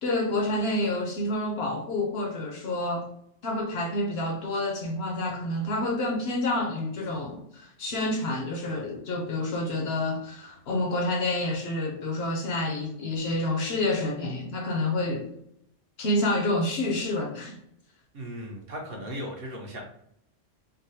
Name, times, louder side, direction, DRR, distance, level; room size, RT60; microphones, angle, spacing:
voice 1, 0.0-3.1 3.4-15.3 16.0-17.6, left 1 dB, 65° left, 0.7 m, -28 dB
voice 2, 18.1-19.8, equal, 55° right, 0.8 m, -37 dB
3.7 x 2.0 x 2.6 m
omnidirectional pair, 1.3 m